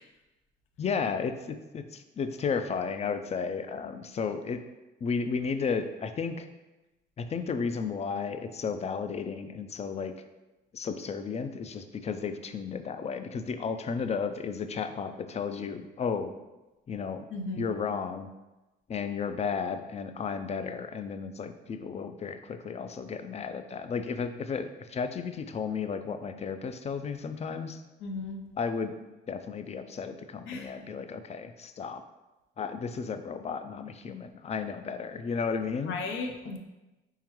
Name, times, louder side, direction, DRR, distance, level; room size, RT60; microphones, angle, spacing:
voice 1, 0.8-4.6 5.0-6.5 7.2-10.1 10.7-16.3 16.9-17.2 17.6-18.3 18.9-27.8 28.6-28.9 29.3-32.0 32.6-36.0, left 5 dB, 35° left, 9 dB, 0.4 m, -33 dB
voice 2, 17.3-17.7 28.0-28.4 30.5-30.7 35.9-36.6, left 3 dB, 85° left, 4 dB, 0.6 m, -35 dB
4.4 x 3.7 x 3.0 m, 1.1 s
cardioid pair, 90°, 20 cm